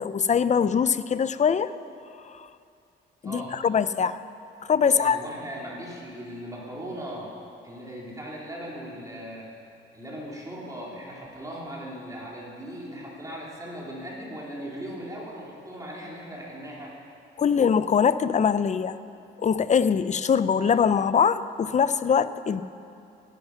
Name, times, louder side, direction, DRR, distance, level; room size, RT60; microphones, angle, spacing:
voice 1, 0.0-1.7 2.2-2.5 3.2-4.2 4.7-5.2 17.4-19.0 19.4-22.6, left 7 dB, 35° left, 14 dB, 0.6 m, -22 dB
voice 2, 3.2-3.6 4.8-7.3 7.6-9.5 9.9-16.9, equal, 15° right, -4 dB, 4.0 m, -38 dB
17.0 x 11.5 x 5.8 m, 2.6 s
cardioid pair, 90°, 20 cm